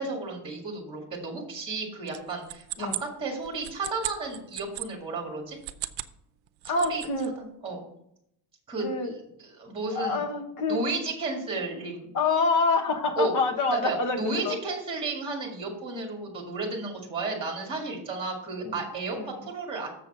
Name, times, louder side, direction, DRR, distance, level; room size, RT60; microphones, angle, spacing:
voice 1, 0.0-5.6 6.6-7.0 7.4-7.8 8.7-10.2 10.7-12.1 13.2-13.3 13.7-19.2 19.4-19.9, right 3 dB, 10° right, 1 dB, 1.9 m, -33 dB
sound 1, 2.1-4.9 5.5-6.2 6.5-7.3, right 16 dB, 75° right, 0.7 m, -36 dB
voice 2, 6.6-7.3 8.8-9.1 9.9-10.8 12.1-14.6 18.6-18.8 19.1-19.3, left 3 dB, 40° left, 5 dB, 1.2 m, -26 dB
7.0 x 6.8 x 5.4 m, 0.75 s
cardioid pair, 175°, 44 cm